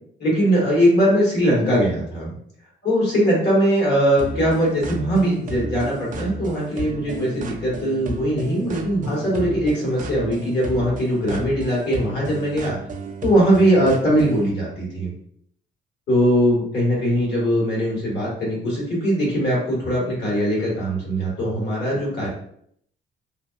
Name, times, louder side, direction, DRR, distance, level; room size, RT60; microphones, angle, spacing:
voice 1, 0.2-2.3 2.8-12.8 13.2-15.1 16.1-22.3, equal, 60° left, -5 dB, 1.5 m, -20 dB
sound 1, 4.2-14.5, right 2 dB, 45° right, 0.4 m, -33 dB
2.7 x 2.3 x 2.3 m, 0.68 s
cardioid pair, 90°, 20 cm